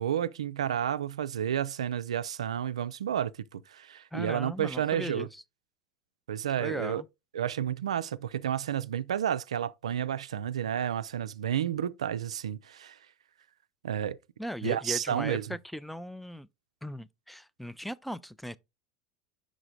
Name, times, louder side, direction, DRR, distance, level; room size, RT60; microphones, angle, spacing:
voice 1, 0.0-5.3 6.3-7.0 7.3-13.0 13.8-14.2 14.6-15.6, right 9 dB, 80° right, 0.3 m, -31 dB
voice 2, 4.1-5.3 6.6-7.1 14.4-16.5 16.8-18.6, equal, ahead, 0.4 m, -38 dB
5.1 x 4.9 x 3.7 m
hypercardioid pair, 80°, 3 cm